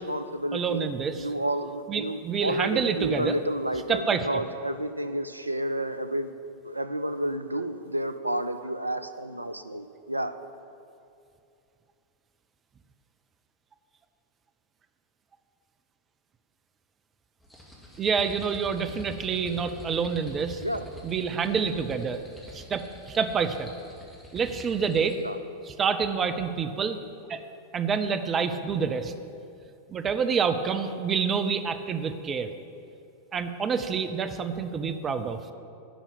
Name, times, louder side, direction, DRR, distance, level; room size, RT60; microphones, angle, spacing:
voice 1, 0.0-0.9 1.2-6.3 6.6-10.3 20.6-20.8 25.2-25.4, right 1 dB, 85° right, 10 dB, 0.5 m, -30 dB
voice 2, 0.5-1.3 1.9-3.4 3.9-4.4 18.0-20.6 21.0-22.2 22.5-23.7 24.3-25.2 25.6-27.0 27.3-27.4 27.7-29.1 29.9-32.5 33.3-35.4, right 6 dB, 25° right, 8 dB, 0.7 m, -27 dB
sound 1, 17.4-25.3, left 1 dB, 5° left, 2.3 m, -46 dB
11.5 x 5.7 x 8.6 m, 2.5 s
figure-of-eight pair, 90°, 0 cm